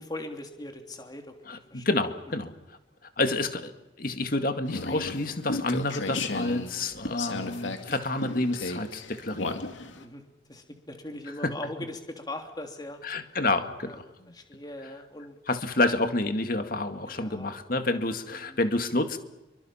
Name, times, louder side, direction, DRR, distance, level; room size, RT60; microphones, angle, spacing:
voice 1, 0.0-1.8 9.4-10.2 10.5-13.0 13.8-14.0 14.3-15.4 17.1-17.5 17.8-18.0 18.3-18.6, left 1 dB, 20° left, 4 dB, 3.1 m, -40 dB
voice 2, 1.5-2.5 3.2-3.7 4.0-9.6 11.4-11.5 13.0-14.3 15.5-19.2, left 2 dB, 50° left, 7 dB, 2.1 m, -29 dB
sound 1, 4.6-10.1, left 2 dB, 90° left, 2.4 m, -34 dB
27.5 x 24.0 x 5.9 m, 1.0 s
head